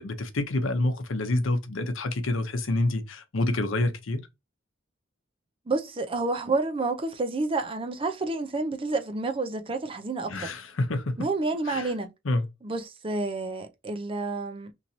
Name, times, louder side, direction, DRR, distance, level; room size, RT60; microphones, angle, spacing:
voice 1, 0.0-4.2 10.3-11.2 11.7-11.9 12.2-12.4, left 2 dB, 85° left, 0.7 m, -27 dB
voice 2, 5.7-10.5 11.2-12.1 12.6-14.7, right 3 dB, 25° right, 0.6 m, -29 dB
3.0 x 2.7 x 2.7 m
head